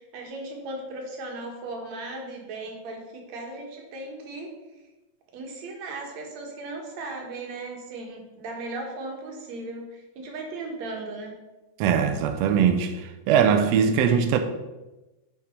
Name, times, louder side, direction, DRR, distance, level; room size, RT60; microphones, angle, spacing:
voice 1, 0.1-4.5 5.3-9.8 10.2-11.3, right 2 dB, 60° right, 2.5 m, -36 dB
voice 2, 11.8-14.4, right 7 dB, 85° right, 1.4 m, -21 dB
6.8 x 5.5 x 5.2 m
omnidirectional pair, 3.7 m